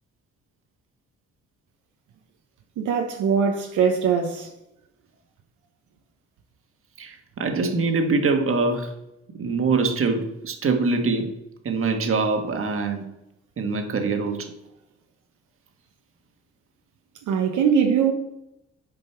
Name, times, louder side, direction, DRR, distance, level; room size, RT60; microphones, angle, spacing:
voice 1, 2.8-4.5 17.3-18.1, right 7 dB, 75° right, 0.9 m, -21 dB
voice 2, 7.0-8.9 9.4-11.4 11.6-13.1 13.6-14.5, right 4 dB, 45° right, 1.5 m, -24 dB
7.2 x 5.3 x 4.5 m
cardioid pair, 90°, 30 cm